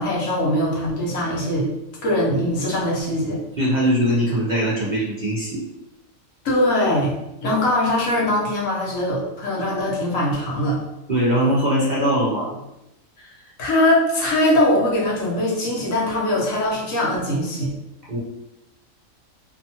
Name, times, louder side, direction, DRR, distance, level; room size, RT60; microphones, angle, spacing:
voice 1, 0.0-1.7 2.0-3.4 6.4-7.1 7.4-10.8 13.6-17.7, left 1 dB, 75° left, -3 dB, 1.2 m, -21 dB
voice 2, 3.6-5.6 11.1-12.6 18.1-18.2, equal, 60° right, -6 dB, 0.4 m, -21 dB
2.8 x 2.2 x 2.7 m, 0.89 s
omnidirectional pair, 1.4 m